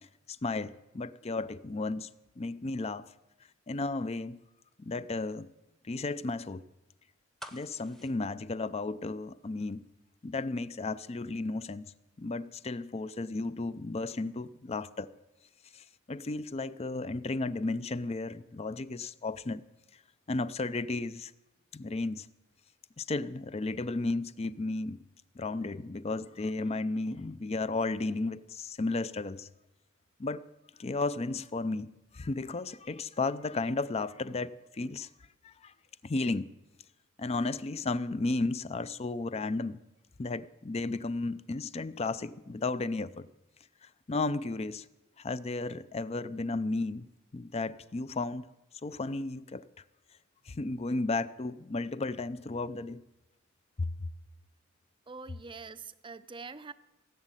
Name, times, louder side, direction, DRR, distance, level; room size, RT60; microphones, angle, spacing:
voice 1, 0.4-2.1 2.4-3.0 3.7-4.4 4.8-5.5 5.9-6.6 7.5-9.8 10.2-11.9 12.2-15.1 15.7-19.6 20.3-21.3 21.7-22.3 23.0-25.0 25.4-29.5 30.2-30.4 30.8-35.1 35.4-35.7 36.0-36.5 37.2-39.8 40.2-43.3 44.1-44.9 45.2-47.1 47.3-48.4 48.8-49.6 50.5-53.0, left 3 dB, 30° left, 0.5 m, -34 dB
sound 1, 7.4-9.4 9.7-9.8, equal, ahead, 0.9 m, -49 dB
voice 2, 55.1-56.7, right 4 dB, 25° right, 0.5 m, -44 dB
17.0 x 7.2 x 9.0 m
head